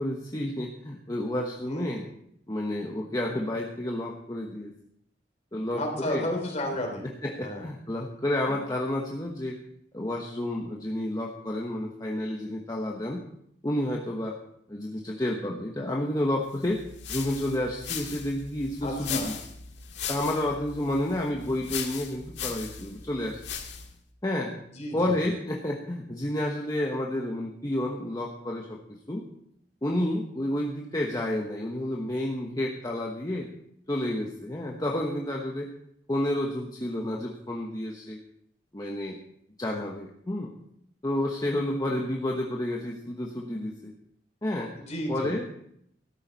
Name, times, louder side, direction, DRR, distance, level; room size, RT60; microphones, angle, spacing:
voice 1, 0.0-2.1 2.5-4.7 5.5-6.3 7.2-9.6 9.9-13.3 13.6-14.4 14.7-19.3 20.1-23.4 24.2-24.5 24.9-28.8 29.1-29.2 29.8-33.5 33.9-35.7 36.1-38.2 38.7-39.2 39.6-40.5 41.0-43.9 44.4-44.7 45.1-45.4, left 1 dB, 20° left, -1 dB, 1.1 m, -30 dB
voice 2, 1.6-2.0 5.7-7.0 7.4-7.7 18.8-19.3 24.7-25.1 44.8-45.3, left 1 dB, 40° left, 2 dB, 3.4 m, -32 dB
sound 1, 16.6-24.0, left 7 dB, 85° left, 1.8 m, -38 dB
13.5 x 12.0 x 4.1 m, 0.72 s
head